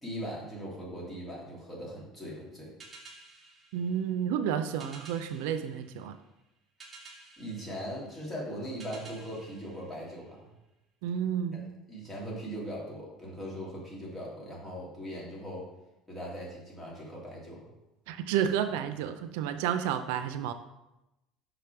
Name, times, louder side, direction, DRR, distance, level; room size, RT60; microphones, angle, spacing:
voice 1, 0.0-2.7 7.4-10.5 11.9-15.6 16.1-17.7, equal, 10° left, -5 dB, 2.2 m, -40 dB
sound 1, 2.8-10.7, right 3 dB, 25° right, 1.1 m, -53 dB
voice 2, 3.7-6.1 11.0-11.7 18.1-20.5, right 9 dB, 90° right, 10 dB, 0.4 m, -31 dB
5.9 x 5.0 x 4.5 m, 0.95 s
cardioid pair, 140°, 0 cm